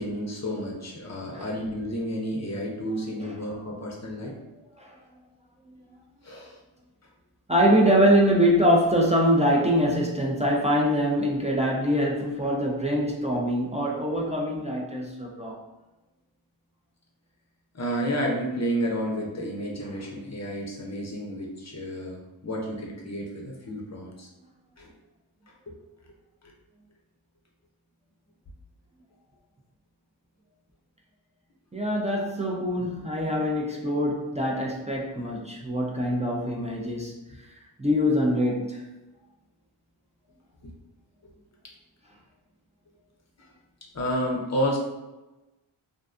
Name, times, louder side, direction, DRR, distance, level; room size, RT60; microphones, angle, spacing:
voice 1, 0.0-4.3 6.2-6.6 17.7-24.3 24.8-24.9 25.7-25.8 40.6-40.7 43.4-43.5 43.9-44.8, equal, 35° left, -2 dB, 0.6 m, -31 dB
voice 2, 7.5-15.6 31.7-37.1 37.8-38.9, equal, 15° right, -3 dB, 0.3 m, -24 dB
2.5 x 2.2 x 2.4 m, 1.1 s
wide cardioid pair, 65°, 50 cm